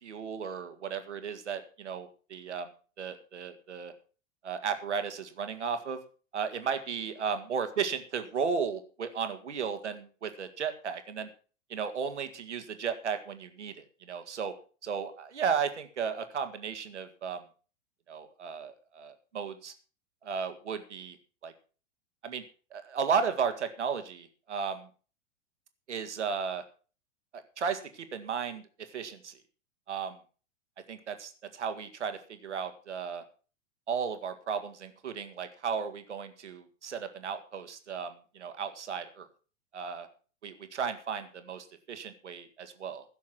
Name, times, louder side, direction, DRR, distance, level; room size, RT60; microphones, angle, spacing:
voice 1, 0.0-2.7 3.0-3.9 4.4-6.0 6.3-11.3 11.7-14.5 14.8-17.4 18.1-19.7 20.2-21.2 21.4-21.5 22.2-22.4 22.7-24.9 25.9-26.6 27.3-29.3 29.9-30.2 30.9-33.2 33.9-39.3 39.7-40.1 40.4-43.0, right 6 dB, 70° right, 8 dB, 2.0 m, -34 dB
16.0 x 7.4 x 6.2 m, 0.38 s
figure-of-eight pair, 95°, 37 cm